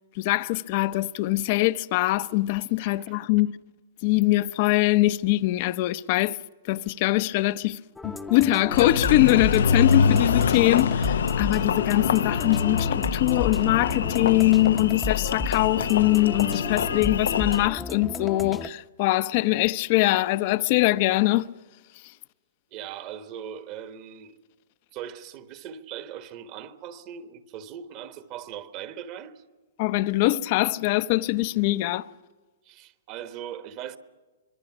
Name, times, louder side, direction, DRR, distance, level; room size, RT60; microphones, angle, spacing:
voice 1, 0.2-3.5 4.0-6.4 6.7-21.5 29.8-32.1, left 18 dB, 40° left, 0.7 m, -23 dB
sound 1, 8.0-18.7, left 3 dB, 5° left, 0.8 m, -34 dB
Engine, 8.7-17.7, left 6 dB, 85° left, 0.7 m, -25 dB
voice 2, 22.7-24.3 24.9-29.4 32.6-34.0, right 9 dB, 35° right, 1.3 m, -39 dB
25.0 x 23.0 x 6.1 m
hypercardioid pair, 155°, 0 cm